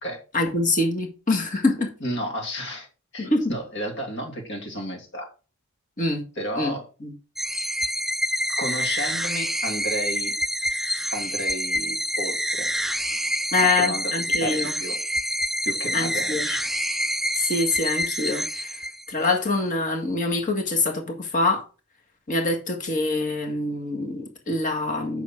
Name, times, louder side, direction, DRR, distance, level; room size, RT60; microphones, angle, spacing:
voice 1, 0.3-1.9 3.2-3.5 6.0-6.2 6.6-6.7 7.0-7.1 13.5-14.7 15.9-16.5 17.4-18.8 19.1-21.6 22.3-25.2, left 2 dB, 35° left, 1.9 m, -25 dB
voice 2, 2.0-2.9 3.1-5.3 6.4-6.9 8.5-10.3 11.1-12.7 13.6-15.0 15.6-16.6, equal, 55° left, 2.9 m, -32 dB
sound 1, 7.4-19.3, equal, ahead, 0.3 m, -27 dB
8.4 x 6.2 x 4.6 m
head